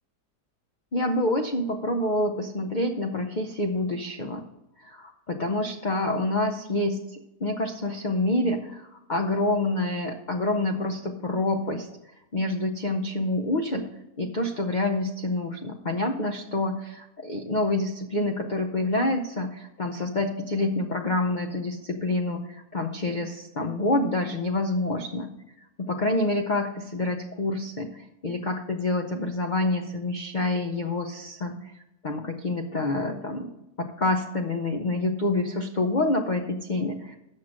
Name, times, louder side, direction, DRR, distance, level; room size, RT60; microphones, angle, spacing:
voice 1, 0.9-4.5 4.8-11.9 12.3-13.9 14.2-25.3 25.8-31.6 32.0-33.5 33.8-37.3, left 2 dB, 85° left, 4 dB, 0.4 m, -27 dB
7.6 x 6.4 x 6.2 m, 0.88 s
omnidirectional pair, 1.8 m